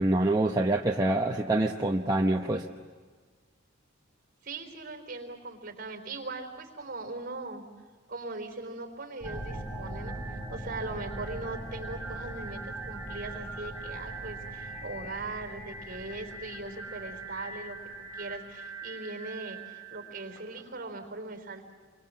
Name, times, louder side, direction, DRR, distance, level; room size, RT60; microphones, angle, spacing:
voice 1, 0.0-2.6, right 2 dB, 20° right, 1 dB, 0.9 m, -26 dB
voice 2, 4.4-7.6 8.1-17.8 18.1-21.7, right 3 dB, 45° right, 5 dB, 4.0 m, -40 dB
sound 1, 9.2-21.0, right 3 dB, 35° left, 6.7 m, -44 dB
sound 2, 9.2-18.3, right 1 dB, 10° left, 7.9 m, -42 dB
29.0 x 24.0 x 7.6 m, 1.5 s
head